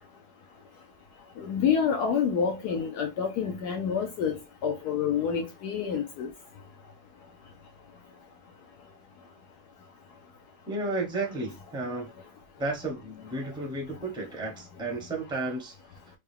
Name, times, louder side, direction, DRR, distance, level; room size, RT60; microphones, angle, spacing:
voice 1, 1.4-4.4 4.6-6.3, left 7 dB, 70° left, 1.0 m, -28 dB
voice 2, 10.7-12.1 12.6-15.7, right 2 dB, 5° right, 0.5 m, -33 dB
4.5 x 2.1 x 3.3 m
omnidirectional pair, 2.0 m